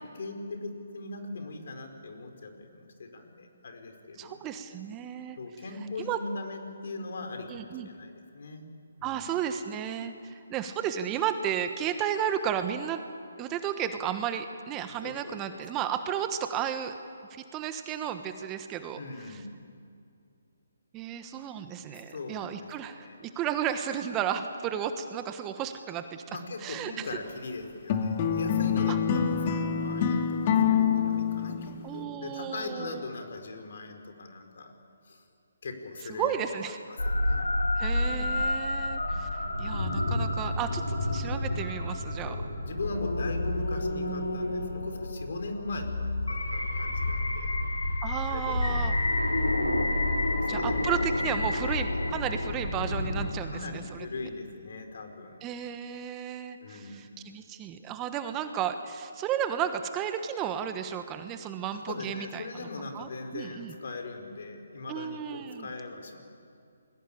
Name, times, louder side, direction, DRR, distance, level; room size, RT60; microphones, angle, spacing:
voice 1, 0.1-4.4 5.3-8.7 9.0-9.3 15.0-15.6 19.0-19.5 21.9-23.2 26.3-34.8 35.0-35.2 35.6-36.4 36.6-37.4 38.0-38.4 42.2-47.5 48.3-49.0 50.3-51.0 51.3-51.7 53.5-55.4 56.6-57.1 61.7-66.2, left 3 dB, 60° left, 5 dB, 4.6 m, -40 dB
voice 2, 4.2-5.4 6.0-6.2 7.5-7.9 9.0-13.0 13.4-16.9 17.3-19.0 19.3-19.4 20.9-27.1 28.9-29.0 31.8-33.0 36.2-36.8 37.8-42.4 48.0-48.9 50.5-54.1 55.4-62.7 62.9-63.8 64.9-65.7, right 9 dB, 20° right, 8 dB, 1.3 m, -33 dB
sound 1, 27.9-32.0, left 7 dB, 35° left, 2.3 m, -26 dB
sound 2, 37.0-53.3, left 1 dB, 90° left, 4.8 m, -29 dB
29.5 x 21.5 x 8.7 m, 2.4 s
figure-of-eight pair, 145°, 0 cm